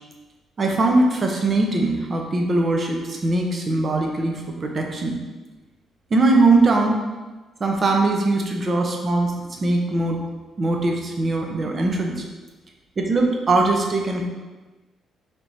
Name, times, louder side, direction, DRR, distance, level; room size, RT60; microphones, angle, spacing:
voice 1, 0.6-5.2 6.1-7.0 7.6-10.2 10.6-12.2 13.0-14.2, right 2 dB, 40° right, 1 dB, 0.7 m, -21 dB
3.4 x 3.0 x 4.1 m, 1.2 s
cardioid pair, 90°, 0 cm